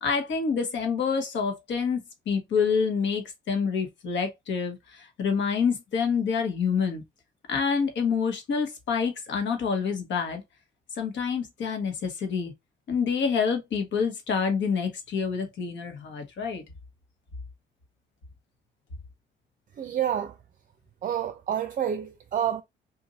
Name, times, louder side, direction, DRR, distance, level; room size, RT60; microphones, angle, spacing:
voice 1, 0.0-7.0 7.5-10.4 10.9-12.5 12.9-16.6, left 6 dB, 70° left, 1.3 m, -27 dB
voice 2, 19.8-20.3 21.0-22.6, right 9 dB, 45° right, 0.5 m, -28 dB
2.7 x 2.6 x 3.9 m
cardioid pair, 90°, 20 cm